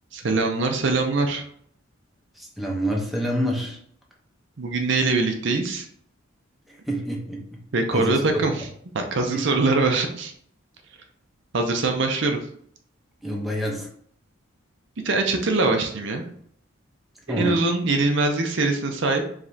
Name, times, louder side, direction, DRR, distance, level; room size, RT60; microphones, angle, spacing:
voice 1, 0.1-1.4 4.6-5.9 7.7-8.7 8.9-10.3 11.5-12.4 15.0-16.2 17.3-19.2, right 3 dB, 60° right, 4 dB, 0.6 m, -23 dB
voice 2, 2.4-3.8 6.9-7.4 7.9-8.4 9.3-9.4 13.2-13.9 17.3-17.5, equal, ahead, -2 dB, 0.8 m, -27 dB
4.9 x 3.3 x 2.8 m, 0.64 s
head